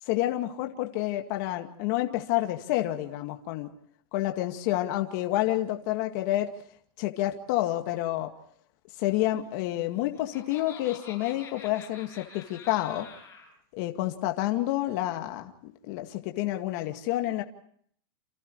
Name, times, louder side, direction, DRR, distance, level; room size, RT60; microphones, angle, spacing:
voice 1, 0.1-3.7 4.1-6.5 7.0-8.3 9.0-13.1 13.7-17.4, left 15 dB, 50° left, 5 dB, 2.1 m, -29 dB
Laughter, 9.7-13.5, left 6 dB, 20° left, 7.6 m, -47 dB
29.5 x 28.5 x 3.2 m, 0.63 s
supercardioid pair, 155°, 13 cm